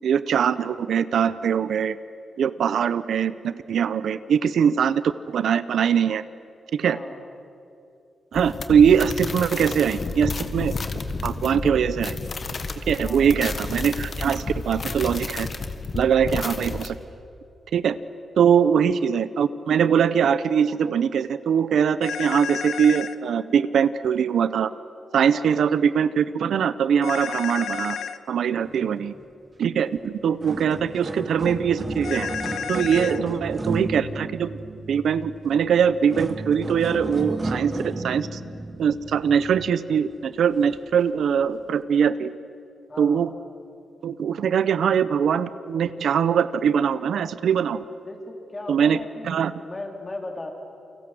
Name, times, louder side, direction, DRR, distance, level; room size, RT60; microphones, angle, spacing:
voice 1, 0.0-2.0 2.4-6.2 6.7-7.0 8.3-10.8 11.2-12.2 12.9-15.5 15.9-17.0 17.7-18.0 18.4-24.7 25.1-28.0 28.3-29.1 29.6-32.3 32.7-34.6 34.9-38.4 38.8-42.3 43.0-43.3 44.0-47.8 48.7-49.0 49.2-49.5, right 7 dB, 75° right, 14 dB, 0.8 m, -22 dB
voice 2, 6.8-7.2 13.0-13.4 16.2-16.5 18.6-18.9 25.3-25.6 28.5-29.1 33.1-33.3 42.9-43.3 48.0-50.5, left 2 dB, 25° left, 2 dB, 4.1 m, -38 dB
sound 1, 8.3-16.9, left 3 dB, 40° left, 1.8 m, -31 dB
sound 2, 22.0-23.1 27.0-28.2 32.0-33.2, left 7 dB, 75° left, 1.1 m, -31 dB
sound 3, 29.9-30.0 30.3-40.0 40.6-40.8 41.5-41.6, right 2 dB, 25° right, 1.7 m, -33 dB
29.0 x 24.5 x 7.9 m, 2.6 s
wide cardioid pair, 120°, 0 cm